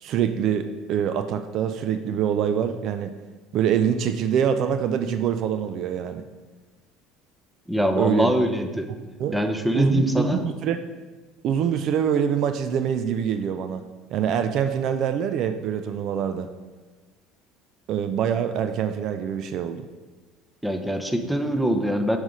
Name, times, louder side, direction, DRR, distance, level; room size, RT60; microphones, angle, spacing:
voice 1, 0.0-3.1 3.5-6.2 8.0-8.3 9.2-9.4 9.7-10.8 11.4-13.8 14.1-16.5 17.9-19.8, right 8 dB, 55° right, 9 dB, 0.4 m, -25 dB
voice 2, 7.7-8.9 9.3-10.4 20.6-22.2, equal, 5° right, 6 dB, 0.7 m, -23 dB
5.4 x 4.8 x 5.1 m, 1.3 s
supercardioid pair, 100°, 0 cm